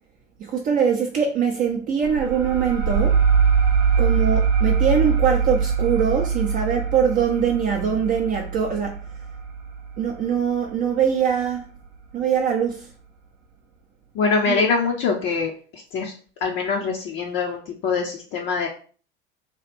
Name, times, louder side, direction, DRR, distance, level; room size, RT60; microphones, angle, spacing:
voice 1, 0.4-3.2 4.0-9.0 10.0-11.7 12.1-12.9 14.5-14.6, right 7 dB, 25° right, 0.4 m, -22 dB
sound 1, 2.0-11.2, right 6 dB, 65° right, 0.8 m, -22 dB
voice 2, 14.1-16.1 16.4-18.7, left 4 dB, 40° left, 0.6 m, -24 dB
3.0 x 2.3 x 3.3 m
figure-of-eight pair, 75°, 31 cm